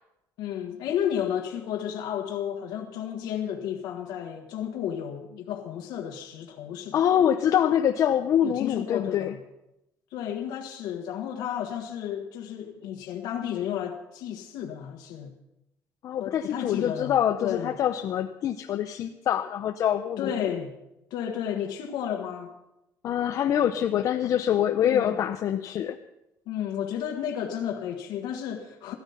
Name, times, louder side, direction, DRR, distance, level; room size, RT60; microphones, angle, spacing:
voice 1, 0.4-7.1 8.4-9.4 10.1-15.3 16.2-17.7 20.2-20.7 21.1-22.5 24.8-25.2 26.5-28.9, left 9 dB, 80° left, 1.5 m, -32 dB
voice 2, 6.9-9.3 16.0-20.3 23.0-26.0, left 10 dB, 50° left, 0.7 m, -25 dB
15.0 x 13.0 x 5.7 m
cardioid pair, 150°, 7 cm